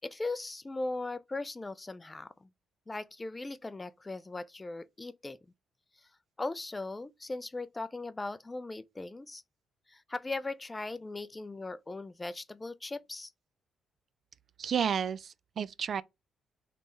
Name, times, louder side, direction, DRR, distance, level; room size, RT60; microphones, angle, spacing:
voice 1, 0.0-2.5 2.9-5.4 6.4-9.4 9.9-13.3, left 2 dB, 20° left, 0.4 m, -38 dB
voice 2, 14.6-16.0, right 7 dB, 55° right, 0.3 m, -31 dB
3.5 x 3.3 x 3.9 m
cardioid pair, 90°, 0 cm